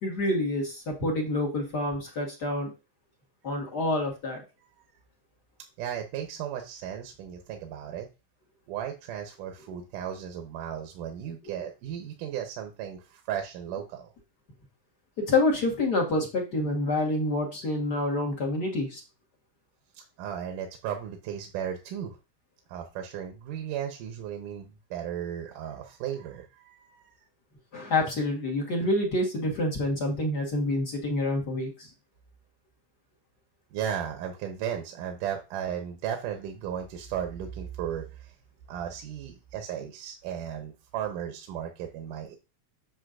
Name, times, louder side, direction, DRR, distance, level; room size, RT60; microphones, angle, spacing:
voice 1, 0.0-2.7 3.4-4.4 15.2-19.0 27.7-31.9, left 2 dB, 45° left, 0 dB, 1.4 m, -27 dB
voice 2, 5.8-8.1 8.7-14.1 20.0-22.2 22.7-27.1 33.7-38.3 38.7-42.4, right 9 dB, 85° right, 4 dB, 2.4 m, -35 dB
8.0 x 7.2 x 2.5 m, 0.28 s
omnidirectional pair, 3.7 m